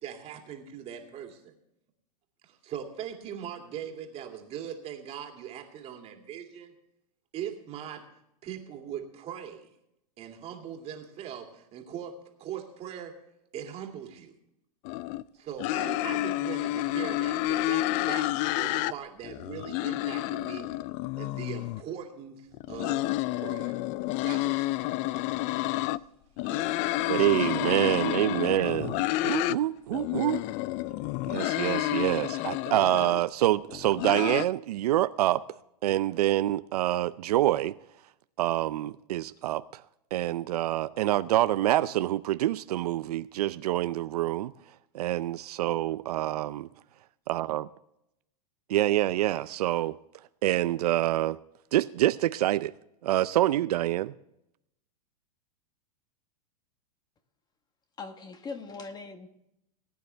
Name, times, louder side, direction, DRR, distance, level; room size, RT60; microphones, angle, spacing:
voice 1, 0.0-1.5 2.4-6.7 7.3-8.1 8.4-9.7 10.2-13.2 13.5-14.3 15.3-18.3 18.6-20.7 21.2-23.1 23.4-23.8 24.2-24.7 25.2-25.4 26.4-27.0, right 9 dB, 30° right, 2.3 m, -40 dB
sound 1, 14.9-15.2 15.6-18.9 19.2-21.8 22.5-26.0 26.4-29.6 29.9-33.2 33.7-34.5, left 17 dB, 40° left, 0.4 m, -30 dB
voice 2, 27.1-30.5 31.3-35.4 35.8-37.8 38.4-39.8 40.1-44.5 44.9-46.7 47.3-47.7 48.7-50.0 50.4-51.4 51.7-52.7 53.0-54.1, right 14 dB, 75° right, 0.5 m, -26 dB
voice 3, 58.0-59.3, left 4 dB, 20° left, 1.2 m, -40 dB
19.0 x 9.4 x 3.3 m
hypercardioid pair, 135°, 20 cm